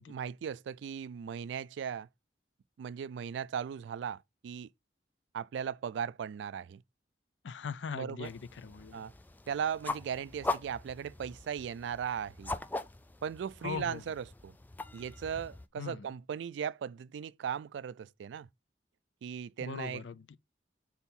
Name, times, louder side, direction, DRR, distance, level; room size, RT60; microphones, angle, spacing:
voice 1, 0.1-2.1 2.8-4.7 5.3-6.8 7.9-8.3 8.9-9.1 9.5-12.6 13.2-14.5 14.9-18.5 19.2-20.0, right 7 dB, 80° right, 0.3 m, -37 dB
voice 2, 7.4-9.0 13.6-14.0 15.8-16.1 19.6-20.4, left 6 dB, 85° left, 0.5 m, -40 dB
sound 1, 8.2-15.7, left 2 dB, 10° left, 0.3 m, -41 dB
4.5 x 4.0 x 5.3 m
head